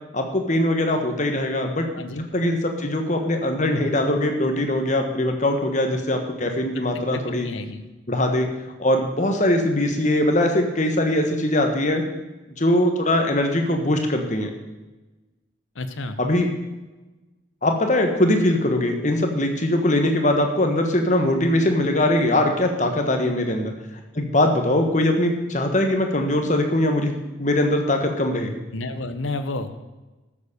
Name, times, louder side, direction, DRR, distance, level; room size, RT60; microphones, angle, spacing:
voice 1, 0.1-7.5 8.1-8.5 8.8-12.0 12.6-14.5 16.2-16.5 17.6-23.7 24.1-27.1 27.4-28.5, left 1 dB, 35° left, 4 dB, 1.6 m, -21 dB
voice 2, 1.9-2.3 7.1-7.8 15.7-16.2 28.7-29.8, left 2 dB, 75° left, 10 dB, 1.0 m, -31 dB
13.0 x 7.3 x 6.7 m, 1.1 s
head